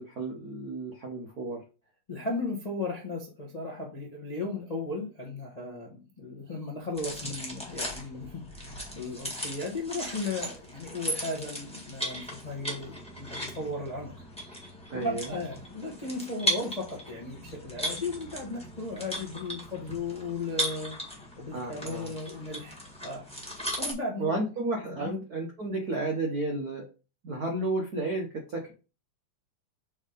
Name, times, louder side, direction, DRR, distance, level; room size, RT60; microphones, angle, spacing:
voice 1, 0.0-1.6 14.9-15.3 21.5-22.1 24.2-26.8 27.2-28.7, right 2 dB, 85° right, 0 dB, 0.8 m, -32 dB
voice 2, 2.1-14.1 14.9-20.9 21.4-23.3 23.8-24.4 24.9-25.1, left 2 dB, 65° left, -2 dB, 0.4 m, -36 dB
sound 1, 7.0-23.9, equal, 5° left, 0.8 m, -37 dB
6.3 x 3.6 x 5.1 m, 0.33 s
omnidirectional pair, 3.4 m